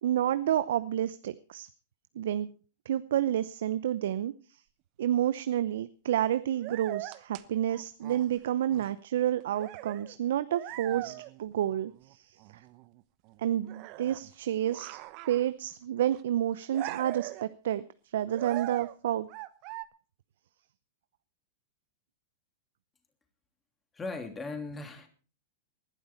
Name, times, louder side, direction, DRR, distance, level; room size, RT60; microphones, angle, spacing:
voice 1, 0.0-1.7 2.2-2.5 2.9-4.6 5.0-11.1 11.4-12.4 13.4-15.0 15.3-17.9 18.1-19.3, right 11 dB, 70° right, 14 dB, 0.7 m, -29 dB
sound 1, 5.3-5.4 6.5-8.4 8.7-9.0 9.4-10.1 10.5-11.4 11.7-12.1 12.4-13.0 13.3-13.4 13.6-14.3 14.6-15.7 16.0-16.2 16.5-17.5 18.3-18.9 19.3-19.8, right 19 dB, 45° right, 1.0 m, -41 dB
voice 2, 23.9-25.1, left 3 dB, 15° left, 5 dB, 3.0 m, -38 dB
20.0 x 12.0 x 4.4 m, 0.39 s
hypercardioid pair, 110°, 0 cm